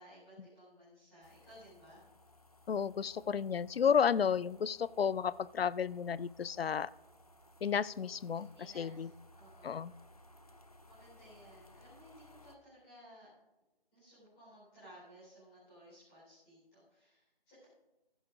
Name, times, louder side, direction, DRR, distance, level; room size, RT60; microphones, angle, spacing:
voice 1, 0.0-2.0 8.3-9.8 10.1-10.2 10.8-13.3 13.9-17.7, equal, 5° left, -12 dB, 4.2 m, -58 dB
sound 1, 1.2-12.6, left 1 dB, 40° left, 0.6 m, -61 dB
voice 2, 2.7-6.9 7.6-8.5 8.8-9.1 9.6-9.9, left 7 dB, 75° left, 20 dB, 0.4 m, -32 dB
15.0 x 11.0 x 2.5 m, 1.0 s
figure-of-eight pair, 175°, 30 cm